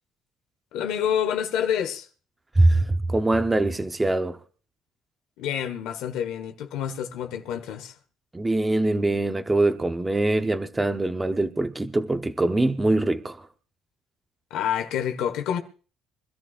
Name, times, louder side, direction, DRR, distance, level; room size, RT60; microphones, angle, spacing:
voice 1, 0.7-2.1 5.4-7.9 14.5-15.6, left 9 dB, 80° left, 1.5 m, -28 dB
voice 2, 2.6-4.4 8.3-13.5, right 2 dB, 15° right, 0.8 m, -23 dB
25.0 x 13.0 x 2.5 m
cardioid pair, 110°, 0 cm